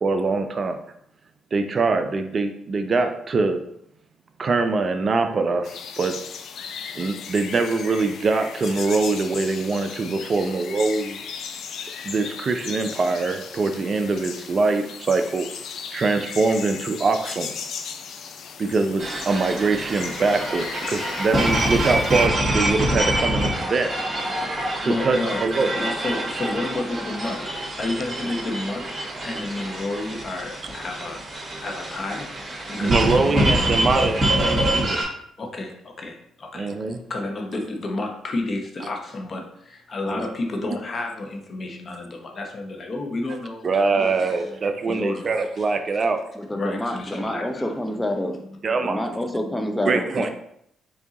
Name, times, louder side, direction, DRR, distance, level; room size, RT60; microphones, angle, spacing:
voice 1, 0.0-0.8 1.5-3.6 4.4-6.2 7.0-11.2 12.0-15.5 15.9-17.5 18.6-23.9 24.8-25.7 32.8-35.0 36.5-37.0 40.1-40.2 43.6-46.2 48.6-49.0 49.9-50.3, right 3 dB, 40° right, 7 dB, 0.4 m, -23 dB
sound 1, 5.6-22.3, left 6 dB, 70° left, 0.4 m, -36 dB
sound 2, 19.0-35.0, right 1 dB, 25° right, 1.9 m, -26 dB
voice 2, 24.8-25.4 25.7-27.4 27.8-28.8 29.2-31.2 31.6-32.3 32.7-33.5 35.4-36.7 37.1-44.6 44.9-45.6 46.5-47.7, left 2 dB, 40° left, 2 dB, 0.9 m, -30 dB
voice 3, 46.3-50.3, left 1 dB, 10° left, 5 dB, 0.6 m, -28 dB
4.7 x 2.7 x 4.0 m, 0.72 s
cardioid pair, 90°, 0 cm